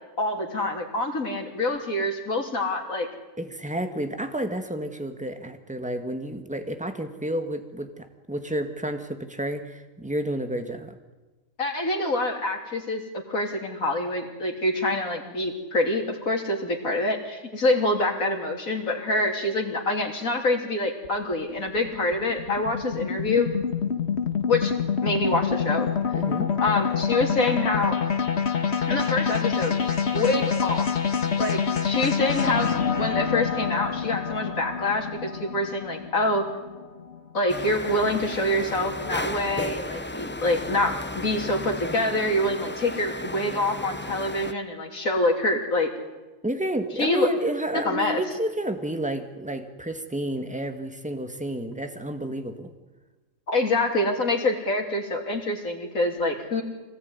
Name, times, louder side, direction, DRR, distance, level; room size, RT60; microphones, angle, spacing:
voice 1, 0.2-3.1 11.6-13.0 13.3-23.5 24.5-24.7 25.0-25.9 26.6-28.0 28.9-29.8 30.1-30.9 31.4-36.4 37.3-45.9 47.0-47.3 47.7-48.2 53.5-56.6, left 2 dB, 85° left, 1 dB, 3.7 m, -26 dB
voice 2, 3.4-11.0 26.1-26.5 46.4-52.7, right 1 dB, 5° right, 7 dB, 1.9 m, -30 dB
sound 1, 21.0-37.4, left 6 dB, 50° left, 1.7 m, -27 dB
sound 2, 37.5-44.5, left 2 dB, 15° left, 0.4 m, -34 dB
25.0 x 19.0 x 9.7 m, 1.2 s
omnidirectional pair, 1.4 m